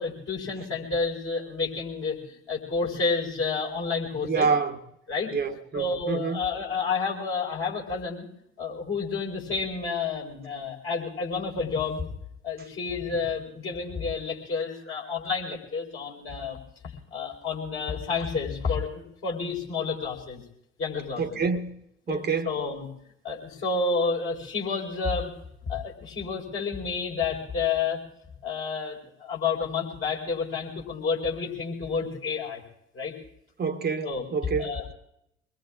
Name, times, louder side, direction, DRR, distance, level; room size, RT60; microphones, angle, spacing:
voice 1, 0.0-4.5 5.1-5.3 5.7-8.3 8.6-12.0 12.4-16.6 16.8-20.4 20.8-21.4 22.1-22.9 23.2-25.3 25.7-28.0 28.4-32.6 32.9-33.1 34.0-34.3 34.6-34.9, left 4 dB, 45° left, 4.7 m, -30 dB
voice 2, 4.2-4.8 5.3-6.4 21.2-21.8 22.1-22.5 33.6-34.7, right 5 dB, 35° right, 1.2 m, -27 dB
25.0 x 21.0 x 2.5 m
figure-of-eight pair, 50°, 29 cm